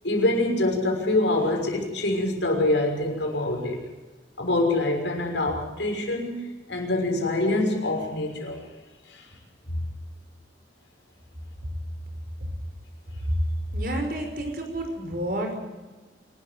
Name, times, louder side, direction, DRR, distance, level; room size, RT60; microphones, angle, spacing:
voice 1, 0.0-3.8 4.4-8.6 9.1-9.3, left 2 dB, 80° left, 1 dB, 6.1 m, -25 dB
voice 2, 13.7-15.5, right 1 dB, 50° right, 4 dB, 5.5 m, -29 dB
26.0 x 13.0 x 9.5 m, 1.2 s
head